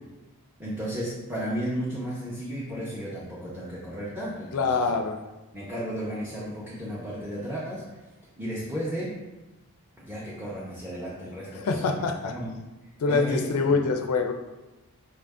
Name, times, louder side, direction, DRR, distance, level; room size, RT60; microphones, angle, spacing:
voice 1, 0.6-4.7 5.5-7.8 8.4-9.1 10.0-12.5 13.1-13.8, equal, 10° right, -8 dB, 0.7 m, -34 dB
voice 2, 4.5-5.2 11.5-12.4 13.0-14.3, left 4 dB, 80° left, 6 dB, 0.4 m, -25 dB
5.4 x 2.5 x 3.4 m, 1.1 s
head